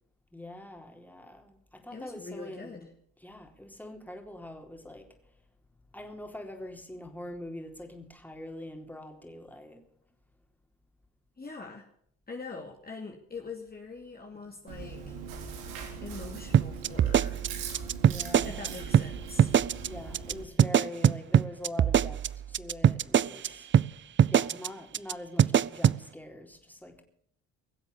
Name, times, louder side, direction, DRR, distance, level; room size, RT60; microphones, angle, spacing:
voice 1, 0.3-2.9 3.2-5.1 5.9-9.8 18.0-18.7 19.9-22.2 22.5-23.7 24.3-27.0, left 1 dB, 5° left, 4.0 m, -43 dB
voice 2, 1.9-2.9 11.4-11.9 12.3-15.2 16.0-17.5 18.4-19.5, left 4 dB, 25° left, 2.6 m, -43 dB
Chewing mastication, 14.7-20.4, right 6 dB, 85° right, 3.2 m, -40 dB
sound 1, 16.5-18.7 18.9-19.1 19.4-19.9 20.1-20.3 20.6-23.5 23.7-23.9 24.2-24.7 24.9-25.1 25.4-26.0, right 9 dB, 35° right, 0.5 m, -22 dB
22.0 x 7.9 x 7.0 m
supercardioid pair, 70°, 33 cm